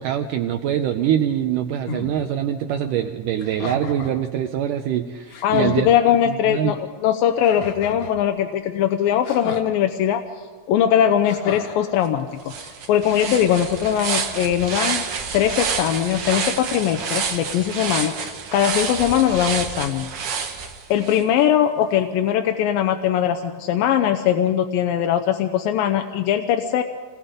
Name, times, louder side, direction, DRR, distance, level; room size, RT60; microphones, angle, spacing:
voice 1, 0.0-6.7, right 10 dB, 80° right, 6 dB, 1.9 m, -24 dB
sound 1, 1.9-2.1 3.4-4.2 4.9-5.0 5.3-5.8 7.4-8.2 9.2-9.7 11.2-11.9 13.1-13.7, left 4 dB, 60° left, 2.4 m, -35 dB
voice 2, 5.4-10.2 10.7-12.3 12.6-15.0 15.3-20.1 20.4-26.8, left 10 dB, 80° left, 6 dB, 2.3 m, -21 dB
sound 2, 12.0-12.1 12.5-21.2, right 6 dB, 55° right, 1.7 m, -28 dB
27.5 x 20.5 x 5.1 m, 1.5 s
omnidirectional pair, 4.5 m